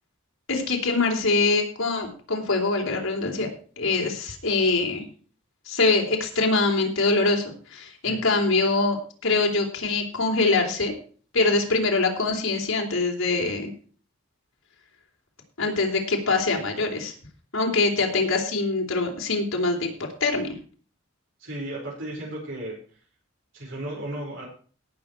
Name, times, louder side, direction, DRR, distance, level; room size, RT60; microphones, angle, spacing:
voice 1, 0.5-3.5 3.8-5.0 5.7-9.0 9.2-10.9 11.3-13.7 15.6-17.1 17.5-19.9 20.2-20.5, left 3 dB, 80° left, 1 dB, 3.6 m, -23 dB
voice 2, 21.4-22.8 23.5-24.5, right 1 dB, 60° right, -5 dB, 4.8 m, -34 dB
18.0 x 6.8 x 4.6 m, 0.41 s
head